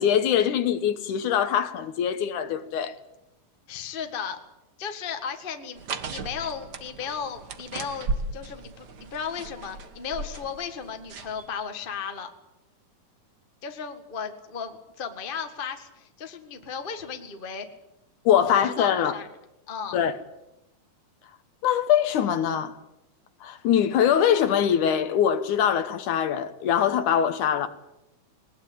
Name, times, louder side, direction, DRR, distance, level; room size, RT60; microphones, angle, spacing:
voice 1, 0.0-2.9 18.3-19.1 19.9-20.1 21.6-22.8 23.4-27.7, left 9 dB, 70° left, 2.4 m, -23 dB
voice 2, 3.7-4.4 4.8-12.3 13.6-17.7 18.5-19.3 19.7-20.0, left 6 dB, 30° left, 0.9 m, -35 dB
sound 1, 5.8-11.5, right 3 dB, 70° right, 1.0 m, -36 dB
20.5 x 20.0 x 8.6 m
omnidirectional pair, 4.0 m